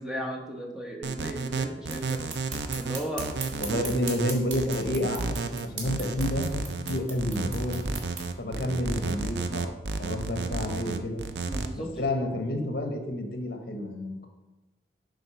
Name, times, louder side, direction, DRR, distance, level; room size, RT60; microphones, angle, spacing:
voice 1, 0.0-2.2 2.8-3.3 3.7-3.8 11.5-11.9, equal, 5° right, 0 dB, 1.0 m, -35 dB
sound 1, 1.0-11.7, right 4 dB, 75° right, 0.5 m, -32 dB
sound 2, 1.8-8.3, right 4 dB, 90° right, 1.9 m, -40 dB
voice 2, 3.6-5.2 5.5-6.6 6.9-7.8 8.4-9.7 10.0-11.2 11.7-14.3, left 1 dB, 55° left, 4 dB, 1.1 m, -30 dB
7.9 x 4.1 x 5.6 m, 1.1 s
head